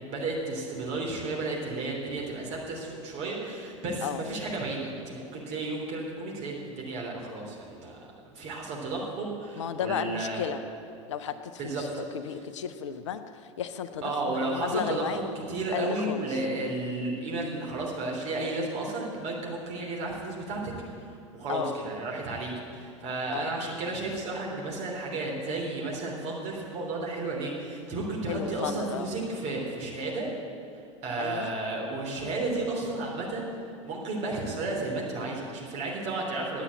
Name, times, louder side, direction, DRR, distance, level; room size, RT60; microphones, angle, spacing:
voice 1, 0.0-10.5 11.6-11.8 14.0-30.3 31.0-33.5 33.8-36.6, right 2 dB, 40° right, -2 dB, 3.2 m, -33 dB
voice 2, 9.6-10.6 11.1-15.2 15.7-16.4 21.5-21.8 23.3-23.5 28.3-29.1 31.2-31.5, left 8 dB, 65° left, 10 dB, 0.6 m, -34 dB
9.9 x 8.3 x 8.7 m, 2.5 s
figure-of-eight pair, 80°, 16 cm